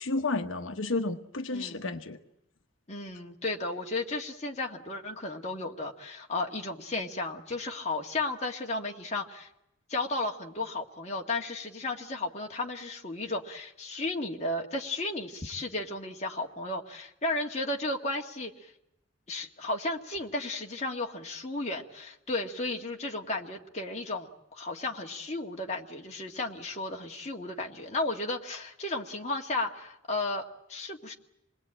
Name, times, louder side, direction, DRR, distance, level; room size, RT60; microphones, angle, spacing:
voice 1, 0.0-2.2, left 3 dB, 75° left, 7 dB, 1.0 m, -31 dB
voice 2, 1.5-1.9 2.9-9.5 9.9-18.7 19.3-31.1, left 2 dB, 35° left, 0 dB, 1.8 m, -34 dB
26.5 x 20.0 x 8.9 m, 0.86 s
head